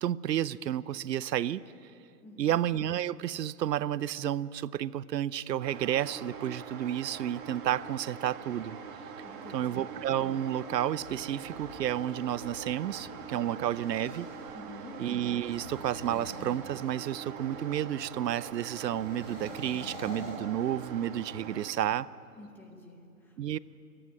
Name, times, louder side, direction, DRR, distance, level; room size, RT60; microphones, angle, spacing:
voice 1, 0.0-1.6 2.4-8.8 9.5-14.3 15.0-22.1 23.4-23.6, right 11 dB, 85° right, 19 dB, 0.7 m, -31 dB
voice 2, 2.2-2.6 9.2-9.9 14.5-15.0 22.4-23.4, left 2 dB, 5° left, 1 dB, 0.7 m, -49 dB
sound 1, 5.6-21.7, right 5 dB, 30° right, 1.9 m, -43 dB
sound 2, 10.8-14.5 15.3-17.3 18.9-21.2, left 1 dB, 40° left, 7.2 m, -48 dB
28.0 x 10.0 x 9.6 m, 2.6 s
hypercardioid pair, 155°, 48 cm